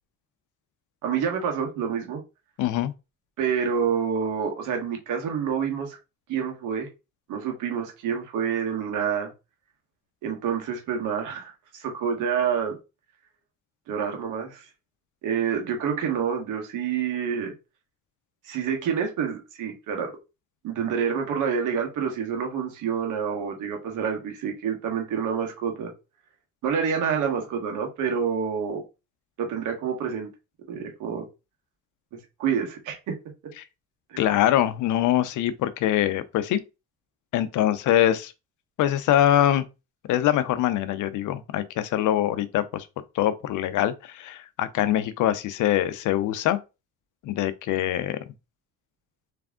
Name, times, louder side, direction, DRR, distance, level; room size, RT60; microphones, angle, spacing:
voice 1, 1.0-2.2 3.4-6.0 6.3-6.9 7.3-9.3 10.2-12.8 13.9-14.6 15.2-17.5 18.4-20.1 20.6-25.9 26.6-28.8 29.4-30.3 30.7-31.3 32.4-33.1 34.1-34.4, right 7 dB, 85° right, 1.5 m, -28 dB
voice 2, 2.6-2.9 34.2-36.6 37.3-38.3 38.8-39.7 40.1-42.9 43.1-46.6 47.2-48.2, left 12 dB, 85° left, 0.6 m, -23 dB
3.5 x 3.3 x 3.6 m
cardioid pair, 90°, 30 cm